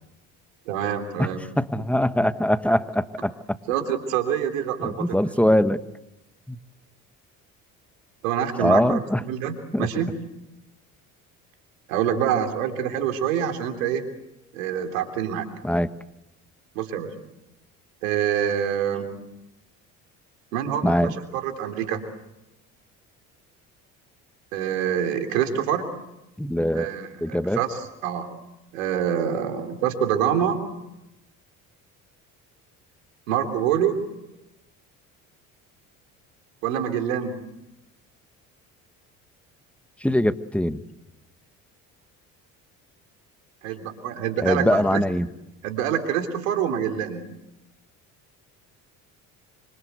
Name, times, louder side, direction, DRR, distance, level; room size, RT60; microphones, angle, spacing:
voice 1, 0.7-1.5 3.7-5.3 8.2-10.1 11.9-14.1 14.5-15.5 16.8-17.1 18.0-19.2 20.5-22.0 24.5-25.9 26.7-28.3 28.7-30.6 33.3-34.0 36.6-37.4 43.6-45.0 45.6-47.3, right 9 dB, 90° right, 6 dB, 3.4 m, -26 dB
voice 2, 1.6-3.3 4.8-5.8 6.5-6.6 8.6-9.2 9.7-9.9 15.6-15.9 20.8-21.2 26.4-26.9 27.2-27.6 40.0-40.8 44.4-45.3, left 1 dB, 5° left, 11 dB, 1.5 m, -22 dB
26.0 x 26.0 x 8.1 m, 0.93 s
supercardioid pair, 70°, 39 cm